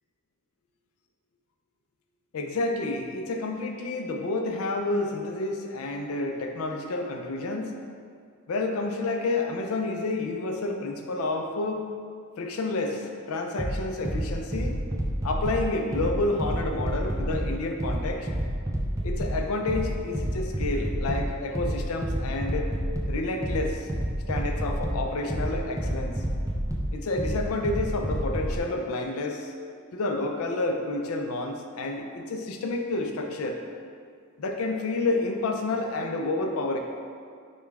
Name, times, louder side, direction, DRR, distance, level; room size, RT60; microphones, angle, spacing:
voice 1, 2.3-7.7 8.5-11.8 12.4-14.8 15.2-18.3 19.0-22.7 23.1-23.9 24.3-26.2 26.9-29.5 29.9-33.6 34.4-36.8, left 2 dB, 70° left, 3 dB, 0.4 m, -29 dB
sound 1, 13.6-28.6, equal, 15° right, 0.4 m, -30 dB
5.1 x 2.3 x 3.4 m, 2.2 s
head